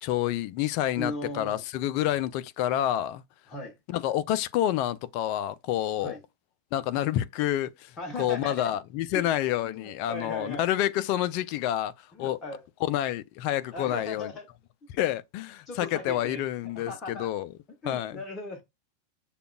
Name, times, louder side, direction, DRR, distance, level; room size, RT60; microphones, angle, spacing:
voice 1, 0.0-3.2 3.9-6.2 6.7-12.4 12.8-14.3 14.9-17.5 17.8-18.2, left 12 dB, 45° left, 0.4 m, -28 dB
voice 2, 0.9-1.6 3.5-3.7 6.0-6.2 8.0-8.7 9.1-9.3 9.6-10.7 12.1-12.7 13.7-14.5 15.7-16.4 16.7-17.3 17.8-18.6, left 2 dB, 25° left, 1.0 m, -37 dB
6.7 x 2.4 x 2.2 m
figure-of-eight pair, 90°, 0 cm